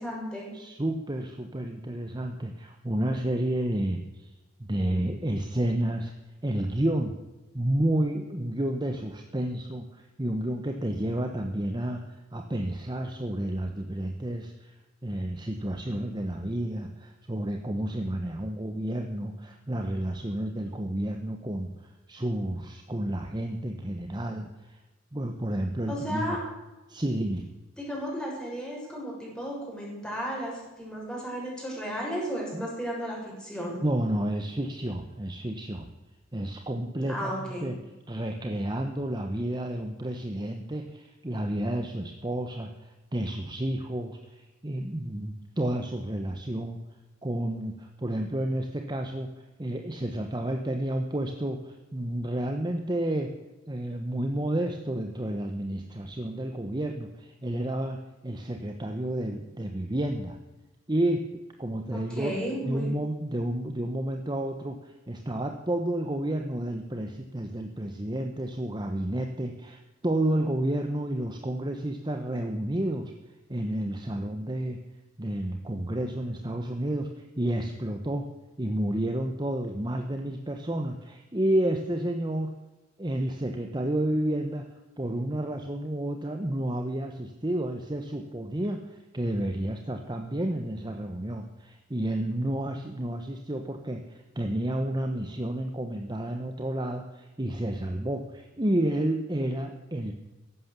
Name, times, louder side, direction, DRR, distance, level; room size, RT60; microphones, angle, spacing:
voice 1, 0.0-0.5 25.9-26.4 27.8-33.8 37.1-37.7 61.9-62.9, equal, 5° left, -4 dB, 6.5 m, -34 dB
voice 2, 0.5-4.3 4.6-6.1 6.4-7.1 7.5-14.7 15.0-24.8 25.1-26.4 26.9-27.5 32.5-32.7 33.8-35.9 36.3-37.7 38.1-46.8 47.2-49.3 49.6-53.3 53.7-58.0 58.2-60.4 60.9-62.3 62.6-73.1 73.5-74.8 75.2-78.3 78.6-82.5 83.0-84.6 85.0-100.1, right 1 dB, 20° right, 4 dB, 1.1 m, -30 dB
15.5 x 11.5 x 6.8 m, 1.1 s
head